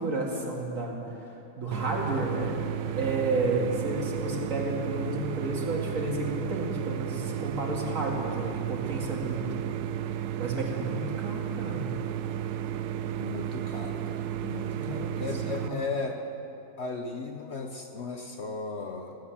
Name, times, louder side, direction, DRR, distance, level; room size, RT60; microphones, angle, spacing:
voice 1, 0.0-2.6 3.0-9.6 10.4-11.9 14.7-15.1 15.6-15.8, right 2 dB, 55° right, -2 dB, 2.4 m, -32 dB
sound 1, 1.7-15.7, right 10 dB, 85° right, 1.1 m, -33 dB
voice 2, 13.2-16.2 16.8-19.2, left 3 dB, 55° left, 4 dB, 0.9 m, -36 dB
16.0 x 9.7 x 7.1 m, 2.8 s
omnidirectional pair, 1.6 m